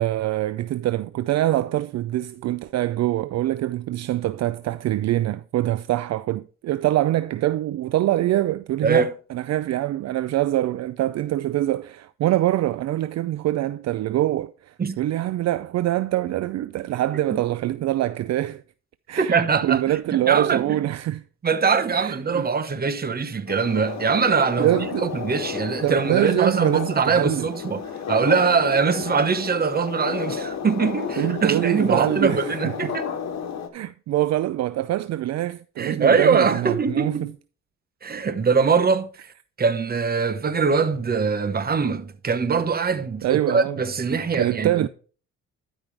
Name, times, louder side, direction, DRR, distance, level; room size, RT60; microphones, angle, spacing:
voice 1, 0.0-18.6 19.1-21.2 22.0-22.5 24.6-25.1 25.8-27.5 31.2-33.0 33.7-37.3 43.2-43.8 44.3-44.9, right 14 dB, 60° right, 0.4 m, -24 dB
voice 2, 8.8-9.1 14.8-15.0 19.2-20.8 21.4-24.7 25.0-33.1 35.8-37.3 38.0-39.1 39.6-44.9, right 5 dB, 30° right, 1.0 m, -22 dB
sound 1, 23.5-33.7, left 7 dB, 60° left, 1.4 m, -32 dB
12.0 x 5.5 x 3.3 m
cardioid pair, 90°, 30 cm